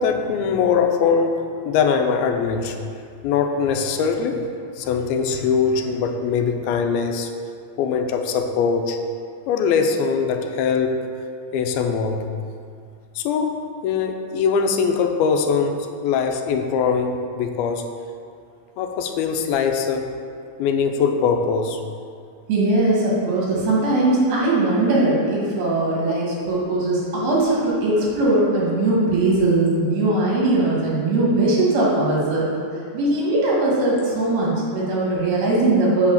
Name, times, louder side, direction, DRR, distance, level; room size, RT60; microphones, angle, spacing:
voice 1, 0.0-2.8 3.2-4.4 4.8-7.3 7.8-9.0 9.5-11.0 11.5-12.3 13.2-17.9 18.8-20.1 20.6-21.8, left 6 dB, 85° left, 5 dB, 2.5 m, -22 dB
voice 2, 22.5-32.5 32.9-36.1, right 2 dB, 80° right, -5 dB, 3.9 m, -20 dB
8.0 x 4.8 x 7.1 m, 2.3 s
omnidirectional pair, 4.2 m